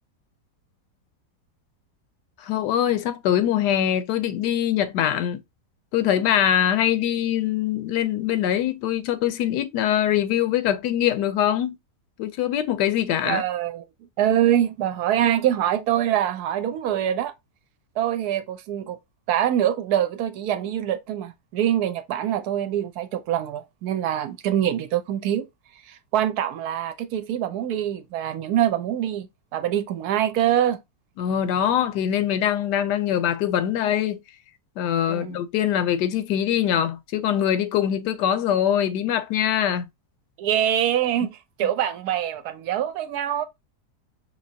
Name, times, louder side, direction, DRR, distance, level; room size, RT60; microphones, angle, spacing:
voice 1, 2.4-5.4 5.9-11.8 12.2-13.4 31.2-34.2 34.8-39.8, left 10 dB, 85° left, 1.2 m, -23 dB
voice 2, 13.3-13.8 14.2-17.3 18.0-19.0 19.3-25.5 25.9-30.8 35.1-35.3 40.4-43.5, right 11 dB, 75° right, 1.1 m, -24 dB
5.3 x 2.9 x 2.7 m
omnidirectional pair, 1.8 m